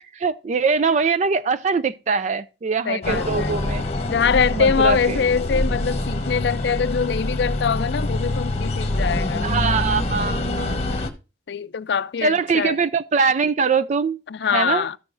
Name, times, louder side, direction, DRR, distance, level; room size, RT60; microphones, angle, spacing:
voice 1, 0.0-3.8 4.5-5.2 9.4-11.0 12.2-14.9, right 5 dB, 40° right, 0.4 m, -23 dB
voice 2, 2.9-3.5 4.1-9.5 11.5-12.8 14.3-14.9, left 6 dB, 65° left, 0.4 m, -23 dB
sound 1, 3.0-11.1, left 1 dB, 35° left, 1.2 m, -25 dB
13.5 x 6.9 x 2.5 m
head